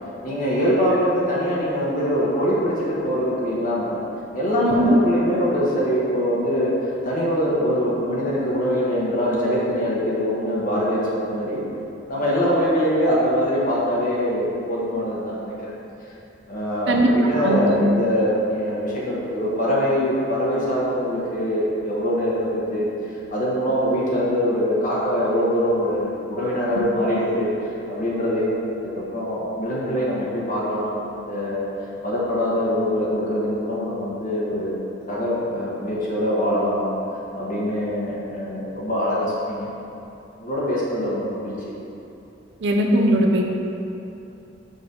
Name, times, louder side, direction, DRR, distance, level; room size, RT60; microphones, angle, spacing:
voice 1, 0.2-4.0 4.3-11.6 12.1-15.7 16.5-22.9 23.3-28.5 28.8-31.6 32.0-34.7 35.1-36.9 37.3-39.7 40.4-41.8, equal, 45° left, -6 dB, 1.1 m, -23 dB
voice 2, 4.6-5.0 16.9-17.8 42.6-43.4, right 1 dB, 65° right, 1 dB, 0.6 m, -19 dB
6.5 x 3.3 x 5.3 m, 2.8 s
head